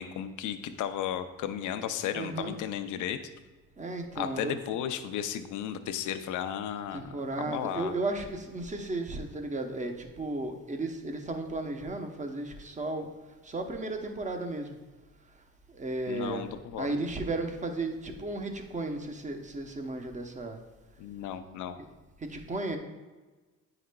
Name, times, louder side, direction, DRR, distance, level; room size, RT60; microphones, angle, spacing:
voice 1, 0.0-3.2 4.1-7.2 7.5-7.9 16.1-16.9 21.0-21.8, left 10 dB, 80° left, 9 dB, 0.5 m, -34 dB
voice 2, 2.1-2.6 3.8-4.6 6.9-13.1 13.4-14.8 15.7-16.5 16.8-20.6 22.2-22.8, right 2 dB, 25° right, 5 dB, 0.8 m, -34 dB
9.3 x 4.9 x 2.2 m, 1.2 s
cardioid pair, 90°, 30 cm